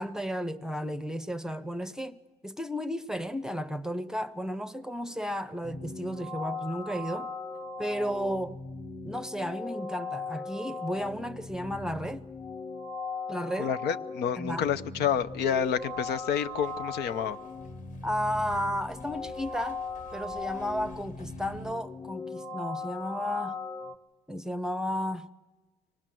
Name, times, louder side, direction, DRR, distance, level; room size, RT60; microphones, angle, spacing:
voice 1, 0.0-7.3 7.8-8.6 9.0-12.2 13.3-13.7 14.4-14.6 18.0-19.8 20.1-23.6 24.3-25.3, equal, 5° right, 0.7 m, -33 dB
sound 1, 5.6-23.9, left 3 dB, 35° left, 1.3 m, -39 dB
voice 2, 13.6-17.4, left 8 dB, 75° left, 0.8 m, -29 dB
sound 2, 15.4-21.7, left 3 dB, 50° left, 1.5 m, -53 dB
24.5 x 18.5 x 7.7 m
cardioid pair, 110°, 17 cm